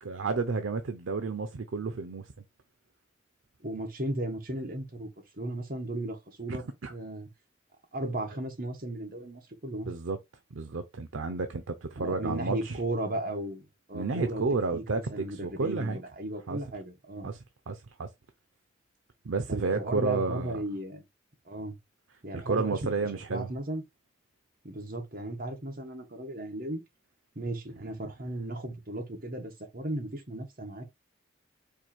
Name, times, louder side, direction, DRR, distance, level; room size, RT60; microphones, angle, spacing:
voice 1, 0.0-2.3 6.5-6.9 9.9-10.2 10.5-12.8 13.9-16.0 16.5-16.6 17.2-17.4 17.7-18.1 19.2-20.6 22.3-23.5, right 4 dB, 90° right, 0.6 m, -31 dB
voice 2, 3.6-5.1 5.3-6.6 6.9-7.3 7.9-9.9 12.0-14.4 14.7-17.3 19.5-21.0 21.4-21.8 22.2-23.8 24.6-26.8 27.3-30.8, right 1 dB, 45° right, 1.2 m, -35 dB
4.6 x 2.6 x 4.3 m
head